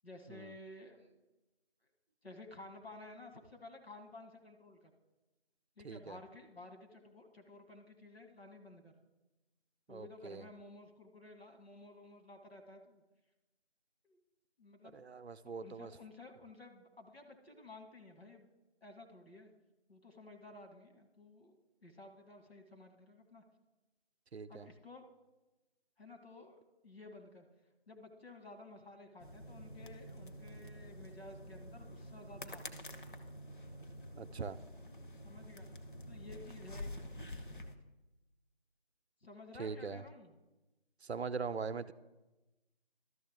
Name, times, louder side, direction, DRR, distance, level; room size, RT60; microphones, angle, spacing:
voice 1, 0.0-1.2 2.2-4.9 5.8-8.9 9.9-13.0 14.0-14.2 14.6-14.9 15.4-18.5 18.8-19.5 19.9-21.5 21.8-23.4 24.5-25.0 26.0-27.5 27.9-32.8 35.2-35.7 36.1-36.9 39.2-40.4, left 2 dB, 70° left, 4 dB, 1.5 m, -54 dB
voice 2, 5.8-6.2 9.9-10.5 14.9-15.9 24.3-24.7 34.2-34.6 39.6-40.0 41.0-41.9, right 5 dB, 90° right, 14 dB, 0.5 m, -41 dB
sound 1, 29.2-37.8, left 1 dB, 55° left, 0.7 m, -48 dB
12.5 x 6.5 x 3.5 m, 1.1 s
figure-of-eight pair, 170°, 31 cm